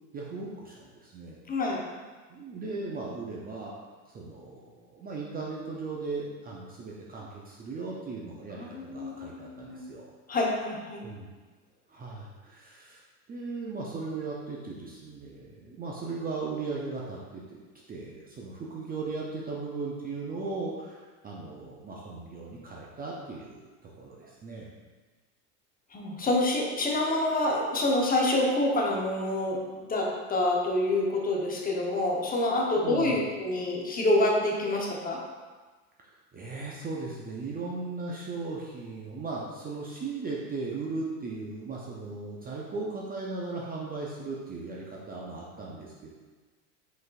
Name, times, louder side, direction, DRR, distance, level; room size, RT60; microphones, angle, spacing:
voice 1, 0.1-1.4 2.3-3.7 4.1-10.1 11.0-11.3 11.9-13.0 13.3-17.6 17.9-24.7 32.8-33.2 36.0-46.1, right 3 dB, 20° right, -3 dB, 0.5 m, -37 dB
voice 2, 1.5-1.9 8.6-9.8 10.3-11.0 25.9-35.2, left 1 dB, 20° left, -1 dB, 0.8 m, -27 dB
5.1 x 4.0 x 2.4 m, 1.4 s
hypercardioid pair, 100°, 46 cm